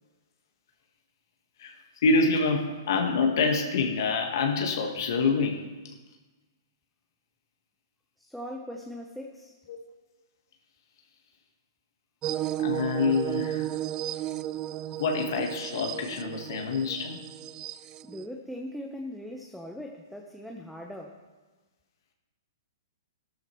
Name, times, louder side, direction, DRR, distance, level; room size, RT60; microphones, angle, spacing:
voice 1, 2.0-5.9 12.6-13.7 15.0-17.2, left 4 dB, 60° left, 3 dB, 1.4 m, -26 dB
voice 2, 8.2-9.6 18.1-21.2, left 1 dB, ahead, 1 dB, 0.8 m, -40 dB
sound 1, 12.2-18.2, right 13 dB, 30° right, 0.4 m, -34 dB
13.5 x 12.5 x 3.1 m, 1.3 s
hypercardioid pair, 125°, 2 cm